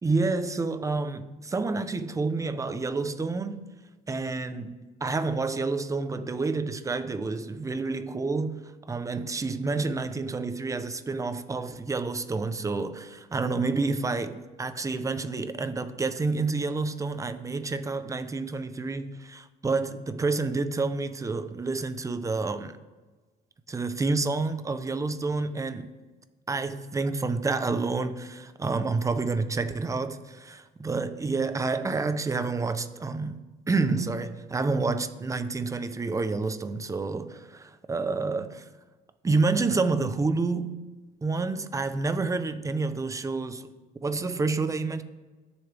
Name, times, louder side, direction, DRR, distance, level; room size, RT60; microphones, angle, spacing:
voice 1, 0.0-3.6 4.1-22.8 23.7-25.9 26.5-38.7 39.2-40.8 41.2-43.7 44.0-45.0, right 3 dB, 20° right, 0.8 m, -29 dB
21.0 x 7.1 x 3.5 m
cardioid pair, 110°, 17 cm